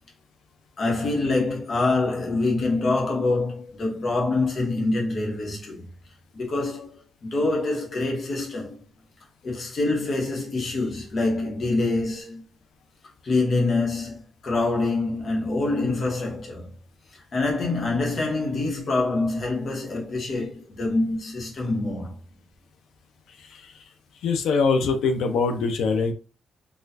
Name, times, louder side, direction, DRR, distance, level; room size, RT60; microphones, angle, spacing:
voice 1, 0.8-5.8 6.3-8.8 9.4-12.4 13.2-16.7 17.3-22.2, left 2 dB, 40° left, 1.1 m, -25 dB
voice 2, 24.2-26.1, left 4 dB, 90° left, 0.7 m, -23 dB
4.1 x 2.4 x 2.7 m
wide cardioid pair, 180°, 0 cm